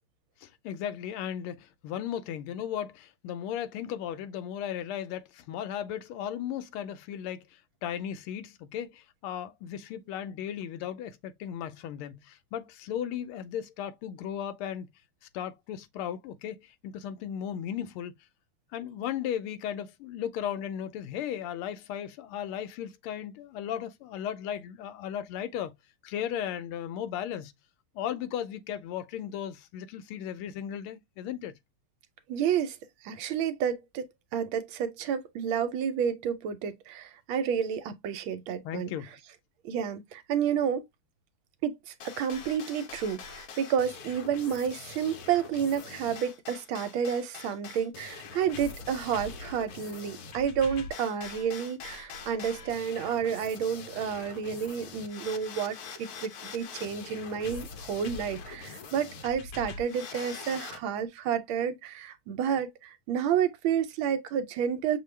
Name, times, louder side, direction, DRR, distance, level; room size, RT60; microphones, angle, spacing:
voice 1, 0.4-14.9 15.3-18.1 18.7-25.8 26.0-27.5 27.9-31.5 38.6-39.1, left 9 dB, 85° left, 1.5 m, -36 dB
voice 2, 32.3-32.8 33.0-38.9 39.6-40.8 41.6-65.0, right 8 dB, 75° right, 1.4 m, -30 dB
sound 1, 42.0-60.8, left 5 dB, 65° left, 1.0 m, -43 dB
6.4 x 2.3 x 3.2 m
omnidirectional pair, 2.4 m